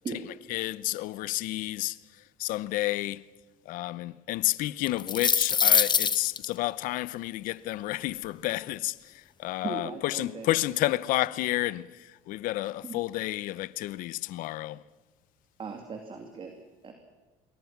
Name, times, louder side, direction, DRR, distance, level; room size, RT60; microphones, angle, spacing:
voice 1, 0.5-2.0 2.4-3.2 3.7-9.0 9.4-11.9 12.3-14.8, left 17 dB, 70° left, 0.8 m, -30 dB
sound 1, 4.9-6.4, left 6 dB, 30° left, 1.2 m, -23 dB
voice 2, 9.6-10.5 12.8-13.0 15.6-16.5 16.8-16.9, right 5 dB, 35° right, 2.8 m, -38 dB
26.5 x 22.5 x 6.0 m
cardioid pair, 100°, 15 cm